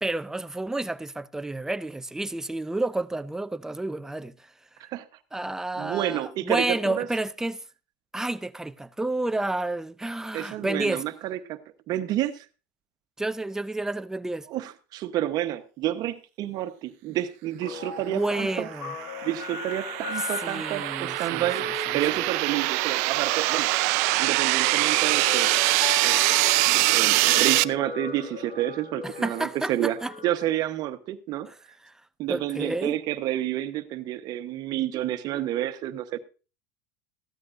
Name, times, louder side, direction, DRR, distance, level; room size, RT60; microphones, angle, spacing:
voice 1, 0.0-4.5 5.3-7.6 8.1-11.0 13.2-14.5 18.1-18.9 20.4-21.5 21.9-22.0 29.2-30.1 31.5-31.6 31.8-31.9 32.3-33.0, right 2 dB, 5° right, 0.5 m, -30 dB
voice 2, 5.8-7.1 10.3-11.6 11.9-12.4 14.5-18.7 19.2-21.7 21.9-23.7 24.2-25.5 26.0-26.3 26.6-30.0 30.2-31.5 32.2-36.2, right 13 dB, 50° right, 1.1 m, -29 dB
Guitar, 17.6-30.3, left 4 dB, 60° left, 3.9 m, -38 dB
sound 1, 18.7-27.6, right 23 dB, 70° right, 0.4 m, -24 dB
15.0 x 12.0 x 2.6 m
supercardioid pair, 120°, 9 cm